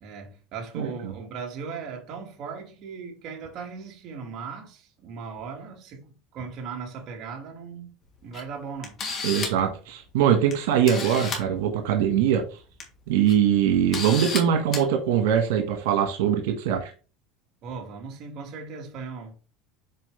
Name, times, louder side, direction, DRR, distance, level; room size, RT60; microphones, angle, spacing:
voice 1, 0.0-7.9 8.2-9.0 17.6-19.3, right 5 dB, 40° right, 2.1 m, -38 dB
Camera, 8.3-8.4 8.8-9.7 10.5-10.6 10.9-11.4 12.6-12.8 13.3-13.4 13.9-14.4 14.7-14.8, left 4 dB, 30° left, 2.1 m, -31 dB
voice 2, 9.2-12.4 13.1-16.9, right 9 dB, 85° right, 1.5 m, -22 dB
7.6 x 4.7 x 3.4 m
cardioid pair, 160°, 0 cm